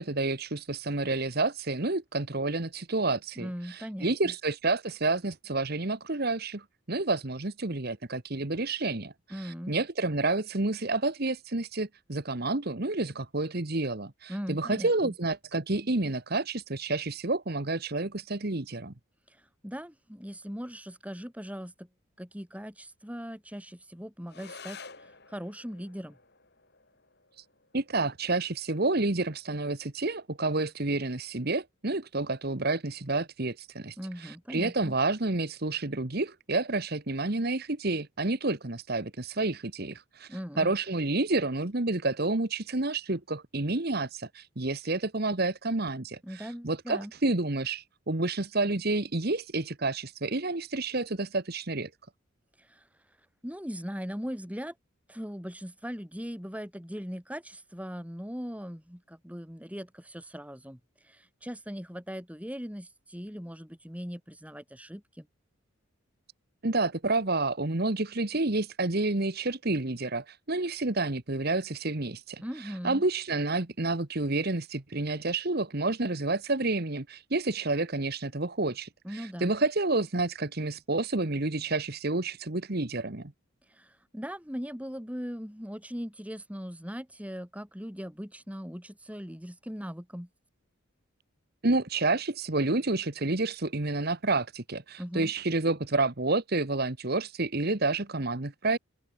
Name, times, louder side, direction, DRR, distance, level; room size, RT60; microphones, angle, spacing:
voice 1, 0.0-18.9 27.4-27.5 27.7-51.9 66.6-83.3 91.6-98.8, right 2 dB, 45° right, 1.4 m, -29 dB
voice 2, 3.4-4.3 9.3-9.7 14.3-15.1 19.6-21.9 22.2-26.2 34.0-34.9 40.3-40.7 46.2-47.1 52.6-52.8 53.4-54.7 55.1-60.8 61.0-65.3 72.4-73.0 79.0-79.5 83.7-90.3 95.0-95.3, equal, 5° right, 5.1 m, -39 dB
sound 1, 24.3-33.3, left 5 dB, 50° left, 7.4 m, -53 dB
open air
head